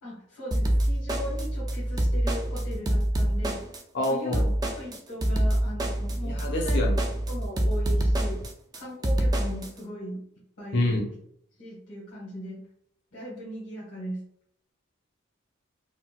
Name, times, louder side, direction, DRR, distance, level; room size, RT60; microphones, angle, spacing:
voice 1, 0.0-3.6 4.1-4.4 4.7-6.8 7.3-8.4 8.8-10.2 10.6-11.0 11.6-12.7 13.1-14.2, equal, 85° left, -8 dB, 1.3 m, -38 dB
sound 1, 0.5-9.7, right 1 dB, 20° right, 0.3 m, -26 dB
voice 2, 3.9-4.5 6.2-7.1 10.7-11.0, left 1 dB, 55° left, 0 dB, 0.6 m, -27 dB
4.1 x 2.1 x 2.2 m, 0.70 s
head